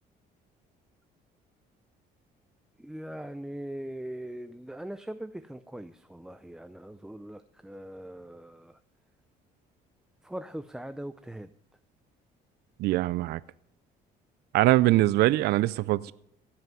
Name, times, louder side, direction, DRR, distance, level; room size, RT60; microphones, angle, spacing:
voice 1, 2.8-8.8 10.2-11.5, right 1 dB, 5° right, 11 dB, 0.5 m, -41 dB
voice 2, 12.8-13.4 14.5-16.1, right 17 dB, 70° right, 19 dB, 0.4 m, -23 dB
16.5 x 5.8 x 9.2 m, 0.75 s
cardioid pair, 110°, 17 cm